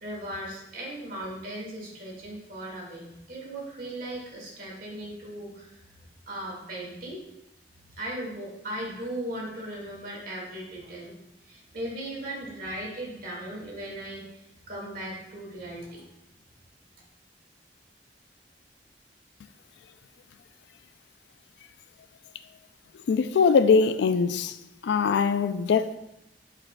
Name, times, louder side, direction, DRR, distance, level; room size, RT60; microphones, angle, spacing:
voice 1, 0.0-5.9 6.3-7.2 7.8-11.1 11.4-16.1, right 1 dB, 55° right, 2.0 m, -37 dB
voice 2, 23.1-24.6 24.8-26.0, left 5 dB, 70° left, 0.3 m, -22 dB
8.5 x 5.0 x 2.2 m
head